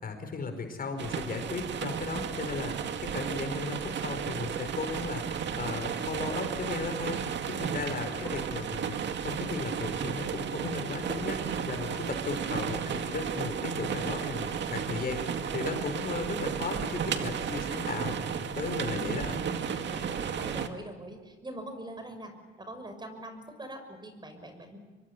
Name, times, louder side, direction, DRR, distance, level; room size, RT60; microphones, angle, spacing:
voice 1, 0.0-8.9 9.2-11.4 11.7-18.2 18.5-19.4, left 4 dB, 45° left, 6 dB, 5.2 m, -36 dB
sound 1, 1.0-20.7, right 7 dB, 65° right, 2.1 m, -33 dB
voice 2, 8.2-8.7 12.4-12.6 16.5-17.4 18.9-19.4 19.7-22.3 22.6-24.8, right 1 dB, 20° right, 7 dB, 6.2 m, -43 dB
25.0 x 23.5 x 10.0 m, 1.3 s
cardioid pair, 90°, 20 cm